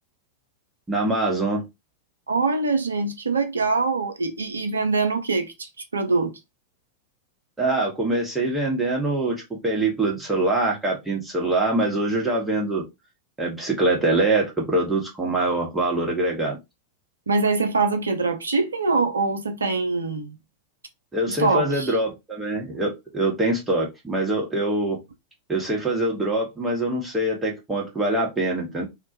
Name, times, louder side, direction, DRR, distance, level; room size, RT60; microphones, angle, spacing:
voice 1, 0.9-1.7 7.6-12.8 13.4-16.6 21.1-25.0 25.5-28.8, right 2 dB, 10° right, 0.9 m, -24 dB
voice 2, 2.3-6.3 17.3-20.4 21.4-22.0, right 3 dB, 75° right, 0.4 m, -23 dB
2.1 x 2.1 x 2.7 m
figure-of-eight pair, 90°, 0 cm